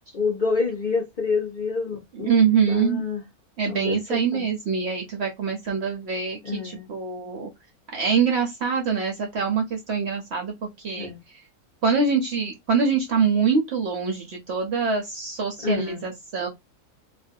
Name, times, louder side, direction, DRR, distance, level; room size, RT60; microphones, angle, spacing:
voice 1, 0.1-3.2 3.6-4.5 6.4-6.9 11.0-11.2 15.6-16.0, left 4 dB, 45° left, 0.7 m, -28 dB
voice 2, 2.1-3.0 3.6-7.5 7.9-11.4 11.8-16.5, right 5 dB, 60° right, 0.7 m, -24 dB
2.5 x 2.2 x 2.5 m
omnidirectional pair, 1.6 m